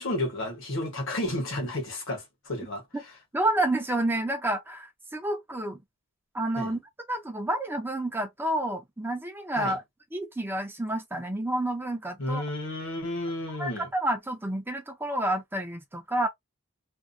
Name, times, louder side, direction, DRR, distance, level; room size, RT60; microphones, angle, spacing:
voice 1, 0.0-2.8 6.6-6.7 9.6-9.8 12.2-13.9, left 1 dB, 65° left, 1.1 m, -32 dB
voice 2, 3.3-5.8 6.3-6.8 7.1-9.8 10.1-12.4 13.6-16.3, right 1 dB, 10° right, 0.6 m, -29 dB
2.6 x 2.1 x 2.6 m
head